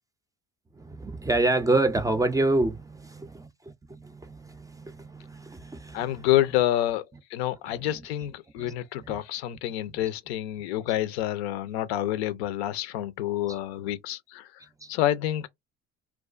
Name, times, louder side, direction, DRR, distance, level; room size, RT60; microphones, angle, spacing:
voice 1, 0.8-6.6 7.1-7.2 7.7-9.2 10.0-10.1 10.9-11.0 13.5-13.6 14.8-14.9, right 2 dB, 10° right, 0.3 m, -29 dB
voice 2, 5.9-7.0 7.3-14.4 14.9-15.5, left 13 dB, 90° left, 0.5 m, -28 dB
2.3 x 2.3 x 2.4 m
hypercardioid pair, 70°, 31 cm